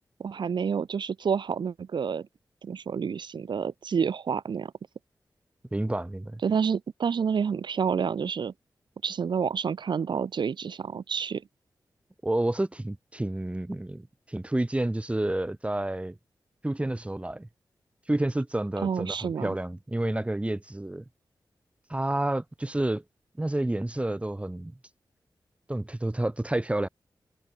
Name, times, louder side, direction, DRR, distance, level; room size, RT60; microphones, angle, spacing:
voice 1, 0.2-2.3 2.6-4.7 6.4-8.5 9.0-11.4 18.8-19.6, right 6 dB, 85° right, 5.1 m, -29 dB
voice 2, 5.7-6.4 12.2-16.2 16.6-17.5 18.1-21.0 21.9-23.0 23.4-24.7 25.7-26.9, right 1 dB, 15° right, 3.4 m, -29 dB
wide cardioid pair, 95°, 8 cm